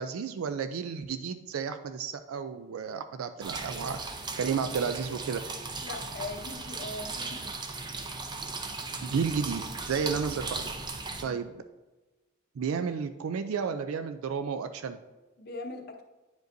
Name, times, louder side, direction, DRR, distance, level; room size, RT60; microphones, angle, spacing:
voice 1, 0.0-4.0 4.4-5.4 9.0-10.6 11.2-11.5 12.6-15.0, right 6 dB, 85° right, 9 dB, 0.4 m, -32 dB
sound 1, 3.4-11.2, right 3 dB, 20° right, 0.5 m, -37 dB
voice 2, 5.8-7.5 11.2-11.4 15.4-16.0, left 2 dB, 50° left, 4 dB, 0.7 m, -40 dB
9.3 x 5.1 x 2.6 m, 1.2 s
head